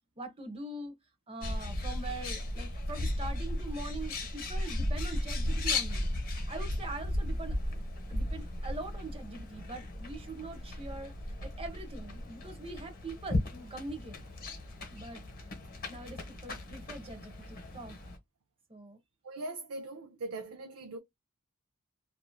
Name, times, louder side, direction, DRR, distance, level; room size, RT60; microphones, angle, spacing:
voice 1, 0.2-1.0 1.3-6.1 6.5-7.6 8.1-11.1 11.4-14.2 14.9-15.2 15.9-18.0 18.7-19.0, right 2 dB, 25° right, 0.8 m, -43 dB
Bird, 1.4-18.2, left 1 dB, 40° left, 1.1 m, -36 dB
voice 2, 19.2-21.0, right 2 dB, 70° right, 0.5 m, -40 dB
3.0 x 2.5 x 2.2 m
head